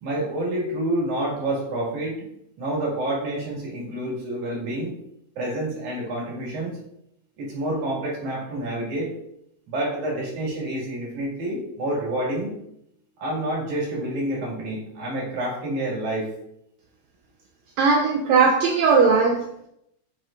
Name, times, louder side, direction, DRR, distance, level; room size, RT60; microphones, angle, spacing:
voice 1, 0.0-2.2 2.6-4.9 5.4-6.8 7.4-9.1 9.7-12.6 13.2-16.3, right 1 dB, 70° right, 3.5 m, -28 dB
voice 2, 17.8-19.7, right 5 dB, 85° right, 1.5 m, -19 dB
7.9 x 5.4 x 2.5 m
omnidirectional pair, 3.7 m